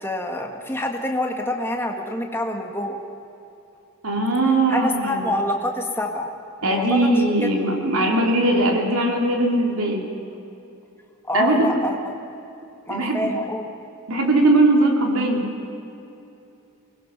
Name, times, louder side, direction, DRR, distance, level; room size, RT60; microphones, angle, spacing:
voice 1, 0.0-3.0 4.7-6.4 6.6-7.5 11.3-12.2 12.9-13.7, left 1 dB, 10° left, 2 dB, 1.9 m, -26 dB
voice 2, 4.0-5.3 6.6-10.0 11.3-11.7 12.9-13.3 14.1-15.5, right 2 dB, 85° right, 1 dB, 3.4 m, -20 dB
24.5 x 20.0 x 6.1 m, 2.8 s
head